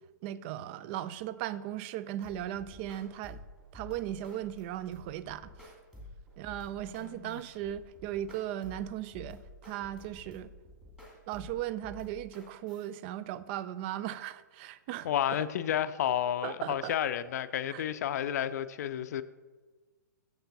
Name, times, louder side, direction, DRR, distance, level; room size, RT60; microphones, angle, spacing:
voice 1, 0.2-3.4 3.7-5.7 6.4-10.5 11.3-15.1 16.4-17.0 17.7-17.8, right 12 dB, 35° right, 0.3 m, -37 dB
sound 1, 2.2-12.9, left 1 dB, 5° right, 2.4 m, -51 dB
voice 2, 7.0-7.4 15.0-19.2, left 10 dB, 60° left, 0.4 m, -31 dB
6.9 x 6.8 x 4.0 m
hypercardioid pair, 125°, 10 cm